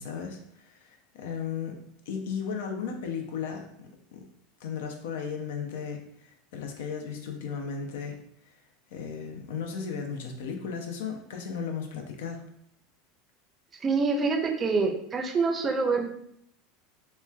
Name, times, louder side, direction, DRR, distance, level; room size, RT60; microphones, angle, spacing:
voice 1, 0.0-1.8 2.1-4.2 4.6-8.2 8.9-12.4, left 6 dB, 75° left, 3 dB, 0.4 m, -35 dB
voice 2, 13.8-16.1, right 4 dB, 30° right, 3 dB, 0.5 m, -26 dB
3.0 x 2.1 x 2.2 m, 0.70 s
hypercardioid pair, 90°, 0 cm